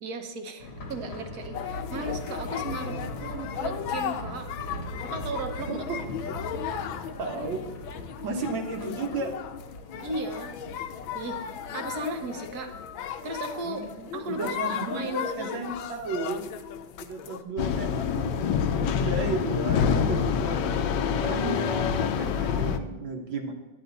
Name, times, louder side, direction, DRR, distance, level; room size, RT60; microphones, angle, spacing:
voice 1, 0.0-4.5 5.0-5.8 10.0-10.6 11.1-11.4 11.7-12.7 13.2-13.8 14.1-15.5, right 2 dB, 55° right, 6 dB, 1.4 m, -36 dB
sound 1, 0.6-16.1 16.3-16.4 16.8-16.9, left 1 dB, 50° left, 1.4 m, -41 dB
sound 2, 1.5-17.4, left 9 dB, 90° left, 1.5 m, -36 dB
voice 2, 2.8-3.3 5.7-6.0 7.2-7.7 8.2-9.4 13.6-16.5 17.0-18.4 18.7-23.5, right 3 dB, 75° right, 2 dB, 2.1 m, -34 dB
sound 3, 17.6-22.8, left 7 dB, 70° left, 1.2 m, -26 dB
11.0 x 9.0 x 4.0 m, 1.2 s
omnidirectional pair, 2.2 m